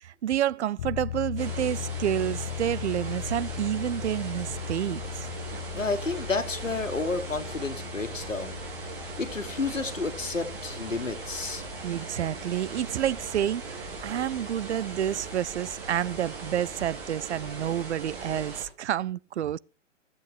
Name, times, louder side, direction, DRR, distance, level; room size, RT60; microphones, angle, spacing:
voice 1, 0.0-5.3 11.8-19.6, right 11 dB, 65° right, 0.5 m, -29 dB
sound 1, 0.8-17.1, left 11 dB, 35° left, 0.6 m, -39 dB
sound 2, 1.4-18.6, right 4 dB, 45° right, 4.3 m, -40 dB
voice 2, 5.7-8.9 9.2-11.6, left 3 dB, 85° left, 1.6 m, -31 dB
14.0 x 7.9 x 4.6 m
figure-of-eight pair, 115°, 37 cm